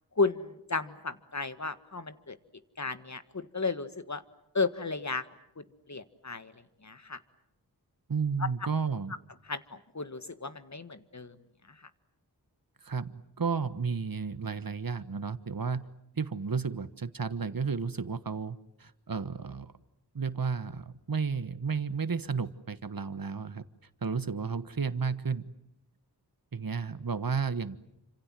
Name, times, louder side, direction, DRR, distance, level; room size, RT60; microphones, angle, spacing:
voice 1, 0.2-2.4 2.8-4.2 4.5-5.3 5.6-7.2 9.5-11.3, left 4 dB, 45° left, 12 dB, 1.7 m, -34 dB
voice 2, 8.1-9.1 12.8-15.9 16.2-19.7 20.1-23.6 24.0-25.5 26.5-27.8, right 5 dB, 60° right, 13 dB, 1.4 m, -32 dB
29.0 x 26.5 x 7.7 m, 0.80 s
wide cardioid pair, 50°, 39 cm